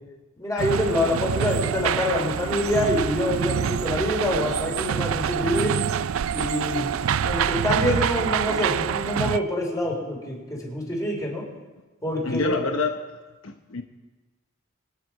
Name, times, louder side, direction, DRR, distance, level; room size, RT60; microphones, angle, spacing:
voice 1, 0.4-5.7 6.3-6.9 7.2-11.4 12.0-12.6, left 1 dB, 15° left, -2 dB, 4.2 m, -26 dB
sound 1, 0.6-9.4, right 8 dB, 85° right, 0.4 m, -26 dB
voice 2, 12.2-13.0 13.4-13.8, left 3 dB, 80° left, 5 dB, 1.0 m, -26 dB
26.0 x 9.4 x 4.7 m, 1.2 s
head